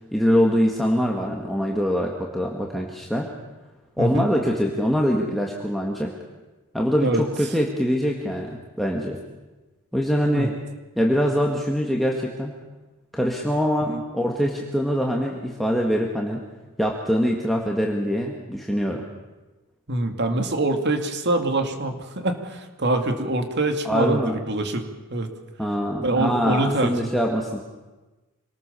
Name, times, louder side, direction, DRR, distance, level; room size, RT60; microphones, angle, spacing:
voice 1, 0.1-3.3 4.0-6.1 6.7-9.2 9.9-10.5 11.0-12.5 13.1-16.4 16.8-19.1 23.8-24.3 25.6-27.6, equal, ahead, -1 dB, 1.8 m, -23 dB
voice 2, 19.9-25.3 26.0-26.9, right 2 dB, 50° right, 5 dB, 2.5 m, -24 dB
26.5 x 19.5 x 7.0 m, 1.2 s
head